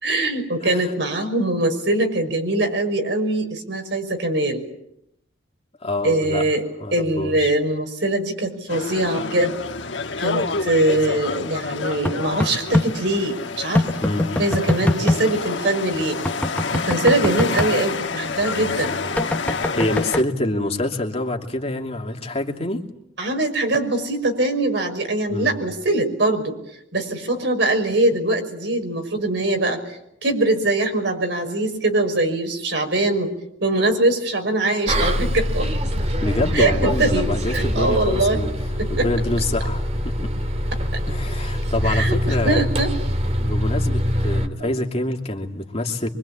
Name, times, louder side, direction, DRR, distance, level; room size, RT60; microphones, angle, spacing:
voice 1, 0.0-4.6 6.0-6.7 6.9-9.6 10.2-13.9 14.4-16.2 16.7-18.9 23.2-26.6 26.9-33.3 33.6-35.7 36.5-38.4 38.8-39.1 41.8-42.9 44.6-44.7, right 2 dB, 65° right, 5 dB, 5.9 m, -22 dB
voice 2, 0.6-0.9 5.8-6.4 6.8-7.5 14.0-14.3 19.7-22.8 25.3-25.6 36.2-38.5 38.9-40.3 41.1-42.7 43.4-46.1, left 1 dB, 30° left, 2 dB, 2.9 m, -26 dB
sound 1, 8.7-20.2, left 4 dB, 70° left, 1.4 m, -28 dB
sound 2, 12.1-12.9 13.7-15.2 16.3-17.7 19.2-20.2, left 1 dB, 10° left, 1.1 m, -22 dB
Bus, 34.9-44.5, equal, 35° right, 2.2 m, -23 dB
25.5 x 24.5 x 8.8 m, 0.78 s
head